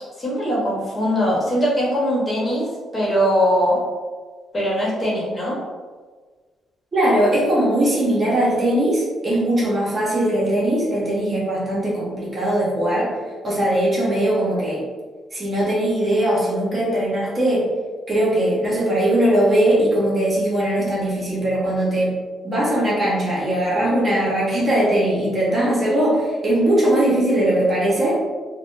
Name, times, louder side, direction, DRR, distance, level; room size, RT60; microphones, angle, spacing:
voice 1, 0.2-2.6 2.9-3.8 4.5-5.6, equal, 25° left, -6 dB, 1.2 m, -21 dB
voice 2, 6.9-13.1 13.4-14.8 15.3-17.7 18.1-22.1 22.4-28.2, right 1 dB, 35° right, -6 dB, 1.0 m, -20 dB
3.4 x 2.2 x 2.6 m, 1.4 s
cardioid pair, 90°, 0 cm